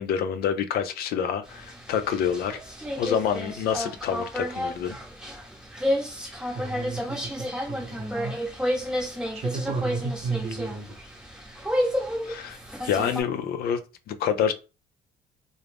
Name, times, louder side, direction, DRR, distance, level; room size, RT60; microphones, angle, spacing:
voice 1, 0.0-2.6 3.0-5.0 12.2-12.6 12.8-13.8 14.1-14.5, left 8 dB, 65° left, 0.4 m, -27 dB
sound 1, 1.5-13.2, equal, 5° right, 0.8 m, -31 dB
voice 2, 6.5-8.4 9.3-11.0, right 4 dB, 40° right, 0.9 m, -33 dB
2.5 x 2.0 x 3.3 m
cardioid pair, 110°, 17 cm